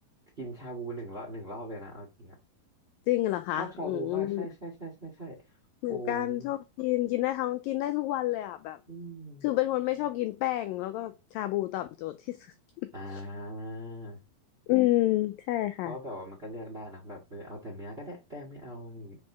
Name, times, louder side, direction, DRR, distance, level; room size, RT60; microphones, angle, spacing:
voice 1, 0.4-2.3 3.6-5.4 5.9-6.5 8.9-9.5 12.9-14.2 15.8-19.2, right 1 dB, 30° right, 1.0 m, -40 dB
voice 2, 3.1-4.5 5.8-8.8 9.4-12.5 13.1-13.2 14.7-16.0, left 16 dB, 85° left, 2.0 m, -29 dB
5.3 x 4.7 x 6.0 m
omnidirectional pair, 4.7 m